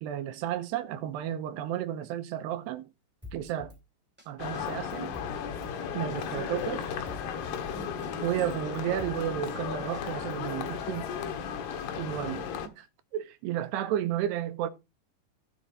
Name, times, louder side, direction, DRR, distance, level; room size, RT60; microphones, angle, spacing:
voice 1, 0.0-2.9 3.3-3.7 4.3-5.1 5.9-6.9 8.2-11.1 12.0-12.4 13.1-14.7, right 11 dB, 80° right, 2.8 m, -32 dB
Drum kit, 3.2-3.8 4.2-4.3 4.5-5.7 6.1-6.3 6.6-7.6 8.0-8.1 8.4-9.5 9.9-10.9, left 3 dB, 5° right, 1.4 m, -48 dB
sound 1, 4.4-12.7, left 7 dB, 70° left, 3.1 m, -35 dB
15.5 x 6.5 x 4.0 m
omnidirectional pair, 5.1 m